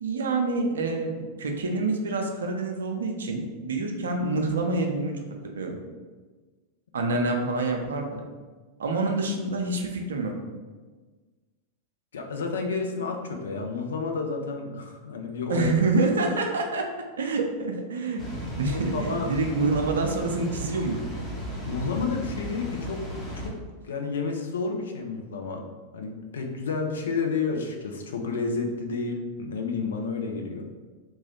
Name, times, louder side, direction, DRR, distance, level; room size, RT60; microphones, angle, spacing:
voice 1, 0.0-5.2 5.4-5.8 6.9-8.2 8.8-10.3 15.5-16.8 17.2-21.0, right 3 dB, 65° right, 3 dB, 0.4 m, -27 dB
voice 2, 12.1-15.7 18.7-19.3 21.7-23.0 23.4-23.6 23.8-25.7 25.9-30.7, left 4 dB, 65° left, 3 dB, 0.4 m, -30 dB
Water, 18.2-23.5, right 1 dB, 15° left, 0.8 m, -35 dB
2.9 x 2.3 x 2.9 m, 1.3 s
figure-of-eight pair, 90°, 0 cm